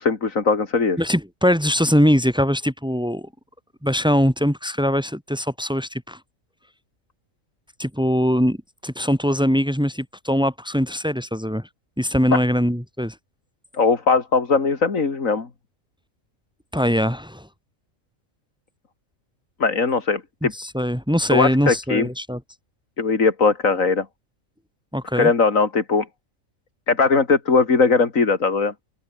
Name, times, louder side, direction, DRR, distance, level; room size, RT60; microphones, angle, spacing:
voice 1, 0.0-1.0 13.7-15.5 19.6-20.5 21.3-22.1 23.0-24.1 25.2-26.1 26.9-28.7, left 4 dB, 80° left, 2.8 m, -19 dB
voice 2, 1.0-3.3 3.8-6.2 7.8-8.6 8.8-11.6 12.0-13.1 16.7-17.5 20.5-22.4 24.9-25.3, equal, 5° right, 6.0 m, -21 dB
omnidirectional pair, 1.4 m